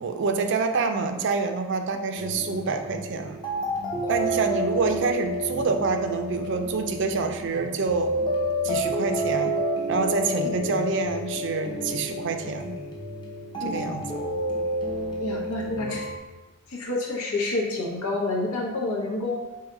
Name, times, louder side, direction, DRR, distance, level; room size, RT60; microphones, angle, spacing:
voice 1, 0.0-3.4 4.1-8.1 8.6-9.6 9.9-12.7 13.6-14.0, right 4 dB, 55° right, 6 dB, 0.4 m, -27 dB
sound 1, 2.2-16.2, equal, 20° left, 0.6 m, -29 dB
voice 2, 15.2-16.0 16.7-19.4, left 2 dB, 80° left, -3 dB, 0.9 m, -28 dB
4.7 x 2.8 x 3.7 m, 1.2 s
head